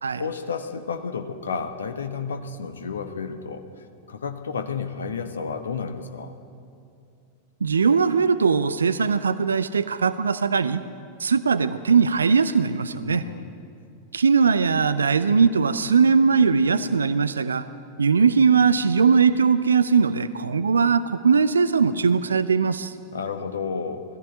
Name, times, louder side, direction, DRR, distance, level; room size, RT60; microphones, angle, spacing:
voice 1, 0.2-6.4 13.0-13.5 23.1-24.0, left 5 dB, 70° left, 8 dB, 1.2 m, -31 dB
voice 2, 7.6-10.8 11.2-13.2 14.1-17.7 18.0-22.9, right 5 dB, 75° right, 14 dB, 0.6 m, -20 dB
20.0 x 14.5 x 9.1 m, 2.6 s
figure-of-eight pair, 90°, 0 cm